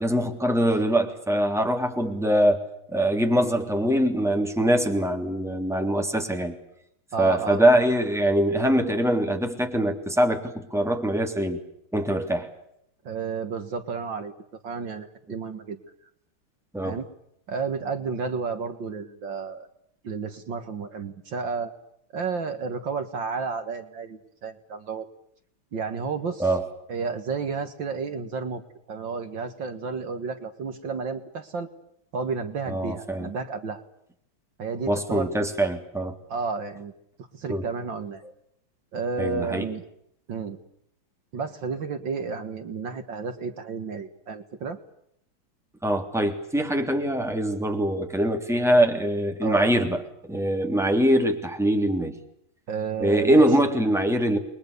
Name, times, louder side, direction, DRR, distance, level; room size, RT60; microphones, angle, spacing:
voice 1, 0.0-2.6 2.9-6.6 7.2-11.6 11.9-12.5 16.7-17.0 26.4-26.6 32.7-33.3 34.9-36.1 37.5-37.6 39.2-39.7 45.8-50.0 50.3-52.2 53.0-54.4, right 1 dB, ahead, 5 dB, 3.0 m, -23 dB
voice 2, 7.1-7.8 13.0-14.3 14.6-15.8 16.8-17.1 17.5-19.7 20.0-21.7 22.1-25.0 25.7-26.5 26.9-28.6 28.9-31.7 32.1-33.8 34.6-35.3 36.3-36.9 37.3-38.2 38.9-39.8 40.3-40.6 41.3-44.8 49.4-49.7 52.7-53.5, right 5 dB, 60° right, 9 dB, 2.3 m, -31 dB
29.5 x 22.5 x 6.8 m, 0.74 s
omnidirectional pair, 2.3 m